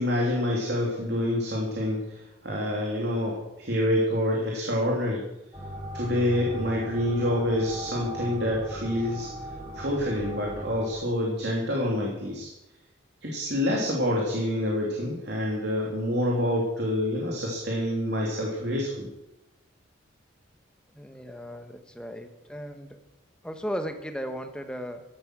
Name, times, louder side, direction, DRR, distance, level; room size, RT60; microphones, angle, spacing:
voice 1, 0.0-5.2 5.9-9.3 9.7-12.5 13.2-19.1, left 1 dB, 55° right, -2 dB, 3.1 m, -27 dB
sound 1, 5.5-10.9, equal, 25° right, 6.5 m, -38 dB
voice 2, 20.9-23.0 23.4-25.0, equal, 5° left, 6 dB, 1.3 m, -36 dB
16.0 x 11.5 x 6.2 m, 0.93 s
head